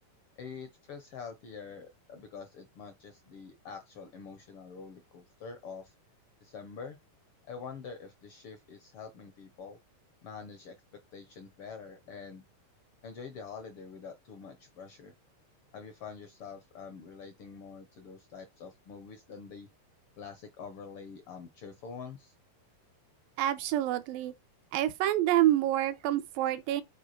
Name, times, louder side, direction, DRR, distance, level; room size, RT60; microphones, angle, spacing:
voice 1, 0.4-5.9 6.4-7.0 7.5-9.8 10.2-10.7 11.1-12.4 13.0-15.1 15.7-19.7 20.2-22.3, left 5 dB, 75° left, 1.2 m, -46 dB
voice 2, 23.4-24.3 24.7-26.8, right 13 dB, 90° right, 2.5 m, -27 dB
8.1 x 4.5 x 4.3 m
omnidirectional pair, 4.0 m